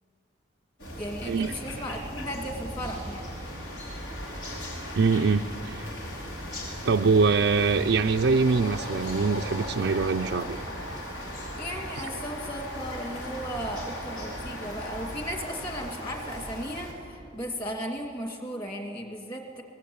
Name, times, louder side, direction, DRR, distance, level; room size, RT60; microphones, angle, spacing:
sound 1, 0.8-16.9, equal, 80° left, 4.6 m, -37 dB
voice 1, 1.0-3.4 11.6-19.6, equal, 25° left, 2 dB, 2.6 m, -36 dB
voice 2, 5.0-5.9 6.8-10.6 12.0-12.1, right 4 dB, 65° right, 5 dB, 0.4 m, -24 dB
22.5 x 18.5 x 8.8 m, 2.5 s
head